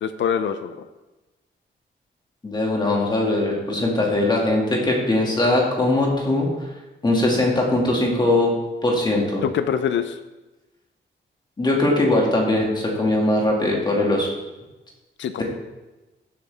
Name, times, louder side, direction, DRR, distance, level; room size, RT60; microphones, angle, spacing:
voice 1, 0.0-0.7 9.4-10.2 15.2-15.4, left 8 dB, 70° left, 9 dB, 0.6 m, -24 dB
voice 2, 2.4-6.5 7.0-8.6 8.8-9.4 11.6-14.3, left 2 dB, 20° left, -2 dB, 2.3 m, -20 dB
14.5 x 8.2 x 3.5 m, 1.1 s
wide cardioid pair, 160°, 20 cm